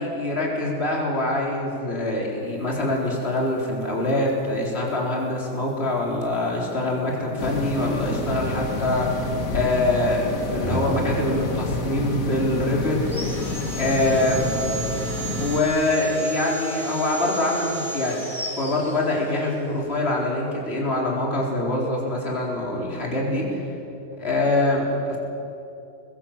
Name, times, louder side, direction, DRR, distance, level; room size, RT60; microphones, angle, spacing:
voice 1, 0.0-13.4 13.7-14.5 15.4-18.3 18.6-23.6 24.2-25.2, left 1 dB, 35° left, -3 dB, 4.5 m, -24 dB
sound 1, 2.8-12.1, left 1 dB, 30° right, 3.5 m, -37 dB
sound 2, 7.4-15.6, left 2 dB, 55° left, 2.2 m, -29 dB
Sawing, 13.0-19.5, right 2 dB, ahead, 5.2 m, -34 dB
28.5 x 23.0 x 7.5 m, 2.8 s
omnidirectional pair, 1.8 m